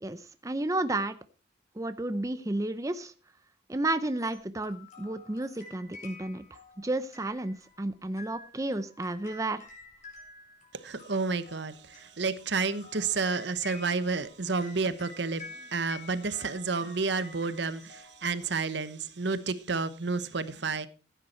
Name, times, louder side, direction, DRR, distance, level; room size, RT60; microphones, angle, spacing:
voice 1, 0.0-1.2 1.8-3.1 3.7-9.6, right 2 dB, 15° right, 0.6 m, -32 dB
Hurdy Gurdy - Battle Hymn of the Republic, 4.0-18.7, left 3 dB, 40° left, 4.8 m, -51 dB
voice 2, 10.7-20.9, right 4 dB, 65° right, 1.0 m, -31 dB
15.0 x 9.3 x 4.3 m
head